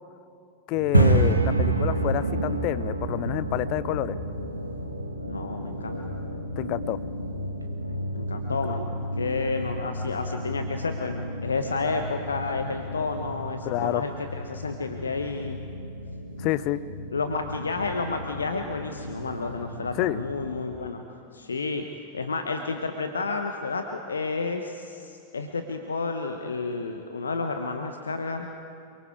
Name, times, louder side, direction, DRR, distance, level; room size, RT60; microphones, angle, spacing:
voice 1, 0.7-4.2 6.6-7.0 8.7-8.8 13.6-14.0 16.4-16.8 20.0-20.2, left 15 dB, 40° left, 17 dB, 0.7 m, -28 dB
sound 1, 0.7-20.6, right 1 dB, 85° right, 2.0 m, -30 dB
voice 2, 5.3-6.0 8.1-11.2 11.4-15.6 17.1-21.0 21.3-21.8 22.1-28.5, left 4 dB, 75° left, 5 dB, 1.2 m, -31 dB
28.0 x 24.0 x 4.8 m, 2.7 s
figure-of-eight pair, 90°, 0 cm